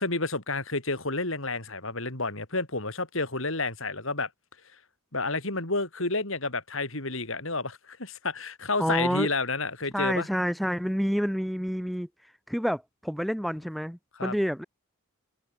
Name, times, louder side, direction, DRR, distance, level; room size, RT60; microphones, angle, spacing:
voice 1, 0.0-4.3 5.1-10.3 14.2-14.3, left 3 dB, 65° left, 4.8 m, -30 dB
voice 2, 8.8-9.3 9.9-12.1 12.5-14.6, equal, ahead, 2.8 m, -28 dB
head